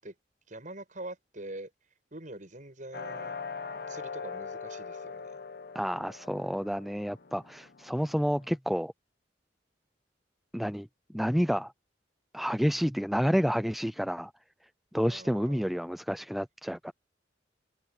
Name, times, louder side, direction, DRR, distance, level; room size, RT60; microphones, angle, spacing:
voice 1, 0.5-1.7 2.1-3.4 3.7-5.4 15.0-15.7, right 1 dB, 45° right, 7.6 m, -44 dB
sound 1, 2.9-8.6, left 5 dB, 55° left, 1.1 m, -42 dB
voice 2, 5.7-8.9 10.5-10.9 11.1-11.7 12.3-14.3 14.9-16.9, equal, ahead, 0.5 m, -29 dB
head